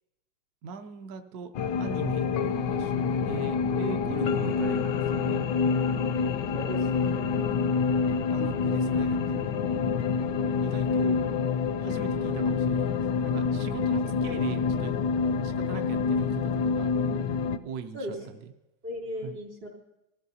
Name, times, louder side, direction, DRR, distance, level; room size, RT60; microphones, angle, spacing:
voice 1, 0.6-5.4 8.3-9.6 10.6-11.2 11.8-15.0 15.4-16.9 17.6-18.5 19.2-19.4, right 6 dB, 65° right, 5 dB, 1.1 m, -40 dB
sound 1, 1.5-17.6, left 5 dB, 75° left, 1.2 m, -27 dB
voice 2, 6.5-7.3 17.9-18.3 18.8-19.7, equal, 80° right, -3 dB, 4.3 m, -36 dB
23.5 x 14.5 x 2.8 m, 0.94 s
omnidirectional pair, 2.0 m